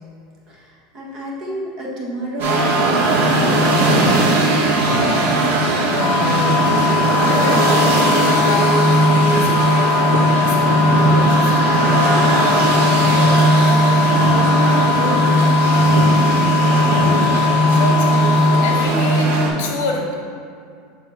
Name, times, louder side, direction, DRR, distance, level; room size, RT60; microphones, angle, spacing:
voice 1, 0.5-4.5 12.9-15.4, right 1 dB, 30° right, -3 dB, 1.1 m, -30 dB
sound 1, 2.4-19.5, right 1 dB, 75° right, 1.4 m, -16 dB
voice 2, 5.8-6.6 6.9-8.7 9.3-12.1 17.7-20.1, left 3 dB, 65° left, 1 dB, 1.0 m, -28 dB
sound 2, 6.0-18.9, left 11 dB, 25° left, 0.4 m, -22 dB
6.8 x 3.4 x 5.5 m, 2.2 s
supercardioid pair, 175°, 0 cm